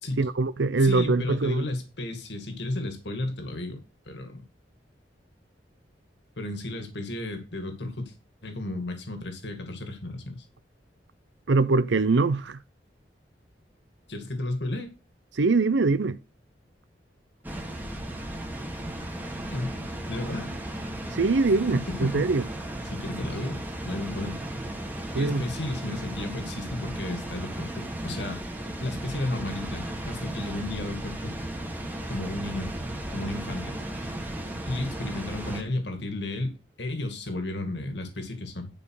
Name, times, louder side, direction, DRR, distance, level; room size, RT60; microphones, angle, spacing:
voice 1, 0.2-1.7 11.5-12.6 15.3-16.2 21.1-22.5 25.1-25.4, right 3 dB, 80° right, 0.6 m, -23 dB
voice 2, 0.8-4.4 6.4-8.1 8.4-10.4 14.1-14.9 19.5-19.8 20.1-20.5 21.9-22.2 22.8-24.4 25.2-28.4 28.8-31.3 32.1-32.7 33.1-34.1 34.7-38.7, left 2 dB, 70° left, 2.2 m, -33 dB
Water, 17.4-35.6, right 1 dB, 10° right, 1.7 m, -35 dB
11.0 x 5.3 x 4.7 m
head